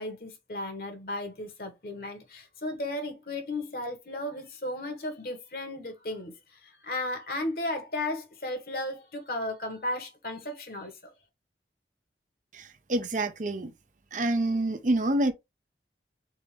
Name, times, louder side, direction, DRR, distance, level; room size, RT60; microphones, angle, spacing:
voice 1, 0.0-11.1, left 1 dB, 55° left, 1.4 m, -35 dB
voice 2, 12.5-13.7 14.1-15.3, right 1 dB, 45° right, 0.6 m, -27 dB
3.9 x 3.7 x 3.2 m
head